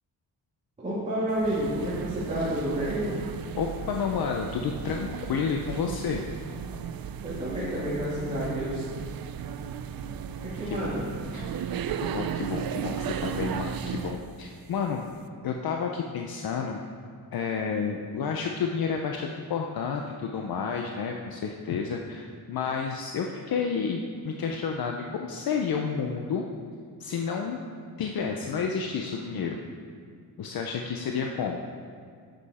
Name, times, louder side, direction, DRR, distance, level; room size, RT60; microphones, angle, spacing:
voice 1, 0.8-3.2 7.2-8.8 10.4-11.0, equal, 20° right, -11 dB, 2.3 m, -30 dB
sound 1, 1.3-14.3, right 8 dB, 65° right, 0.5 m, -35 dB
voice 2, 3.5-6.2 10.7-10.8 11.3-11.7 12.0-15.1 15.4-16.8 17.3-26.5 27.0-27.7 28.0-29.6 30.4-31.6, left 6 dB, 70° left, 2 dB, 0.7 m, -30 dB
11.5 x 7.8 x 4.2 m, 2.1 s
wide cardioid pair, 175°, 38 cm